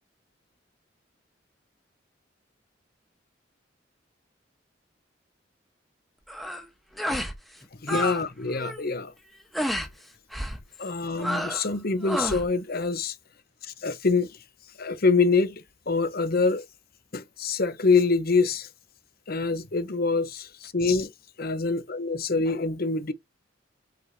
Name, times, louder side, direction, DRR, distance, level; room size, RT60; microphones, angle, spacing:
sound 1, 6.3-6.6 7.0-7.4 7.6-8.2 8.5-8.8 9.5-9.9 10.3-10.6 11.2-11.7 12.0-12.5, equal, ahead, 1.2 m, -30 dB
voice 1, 7.8-9.1 10.8-13.2 13.6-14.4 14.8-16.6 17.1-18.7 19.3-21.1 21.4-23.1, left 4 dB, 55° left, 1.0 m, -25 dB
7.9 x 4.9 x 2.8 m
head